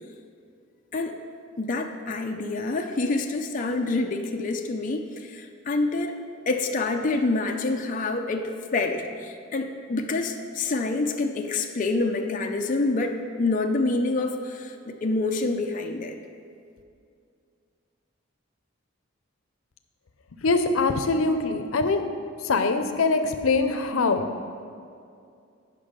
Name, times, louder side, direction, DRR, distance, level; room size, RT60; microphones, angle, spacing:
voice 1, 1.6-6.2 6.5-16.2, left 3 dB, 40° left, 3 dB, 0.5 m, -27 dB
voice 2, 20.4-22.0 22.5-24.3, left 3 dB, 85° left, 7 dB, 0.6 m, -23 dB
9.1 x 5.9 x 5.2 m, 2.4 s
head